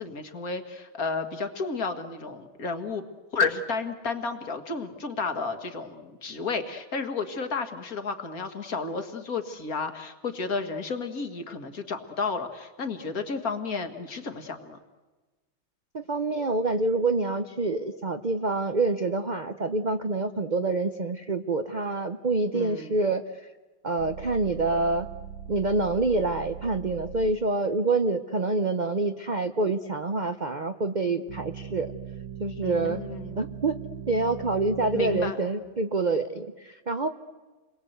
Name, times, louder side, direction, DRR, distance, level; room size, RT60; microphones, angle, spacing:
voice 1, 0.0-3.0 3.3-14.8 22.5-22.9 32.6-33.4 34.9-35.4, left 4 dB, 45° left, 8 dB, 2.0 m, -32 dB
voice 2, 15.9-23.2 23.8-25.1 25.5-31.9 32.4-33.0 33.4-33.8 34.1-37.1, right 3 dB, 60° right, 8 dB, 0.4 m, -26 dB
sound 1, 24.0-27.4 31.3-35.3, right 9 dB, 80° right, 2.0 m, -40 dB
29.0 x 22.0 x 8.0 m, 1.3 s
omnidirectional pair, 2.2 m